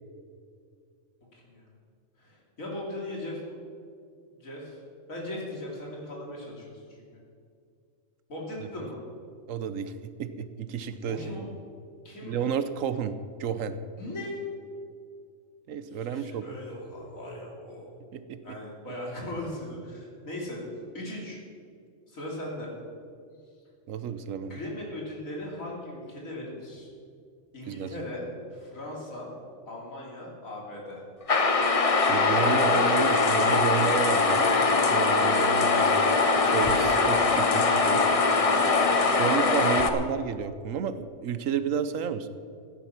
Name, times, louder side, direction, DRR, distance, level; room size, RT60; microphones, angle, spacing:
voice 1, 1.3-1.7 2.2-3.6 4.3-4.8 5.1-6.8 7.1-7.2 8.3-9.0 11.1-11.4 12.1-12.4 14.0-14.3 15.9-17.9 18.4-20.6 20.9-21.4 22.1-22.7 24.5-26.9 27.5-28.3 28.5-29.3 29.7-31.0, left 1 dB, 90° left, -3 dB, 3.5 m, -38 dB
voice 2, 9.5-9.9 10.2-11.2 12.2-13.8 15.7-16.5 18.1-18.6 23.9-24.6 27.7-27.9 31.6-31.7 32.1-34.5 34.9-36.1 36.4-38.0 39.1-42.3, right 7 dB, 80° right, 12 dB, 1.1 m, -31 dB
sound 1, 31.3-39.9, left 3 dB, 30° left, 0.7 m, -22 dB
15.0 x 10.0 x 5.9 m, 2.3 s
omnidirectional pair, 1.4 m